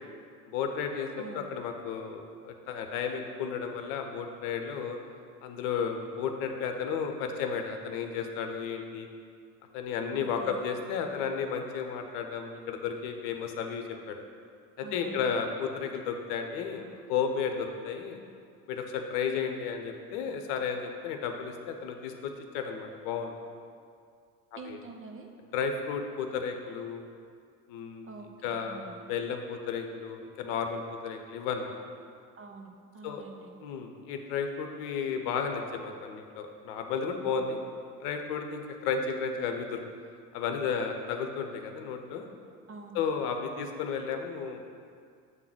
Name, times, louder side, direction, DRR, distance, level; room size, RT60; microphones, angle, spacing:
voice 1, 0.5-5.0 5.4-9.1 9.7-14.2 14.8-18.2 18.7-23.4 24.7-24.8 25.5-27.0 27.7-28.1 28.4-31.7 33.0-33.2 33.6-37.6 38.0-39.8 40.3-42.3 42.9-44.6, left 6 dB, 55° left, 5 dB, 0.9 m, -33 dB
voice 2, 1.2-1.5 10.1-10.6 14.8-15.3 24.5-25.3 28.0-29.1 32.4-33.5 42.7-43.0, right 3 dB, 30° right, 3 dB, 0.8 m, -46 dB
7.9 x 3.9 x 6.0 m, 2.2 s
hypercardioid pair, 75°, 45 cm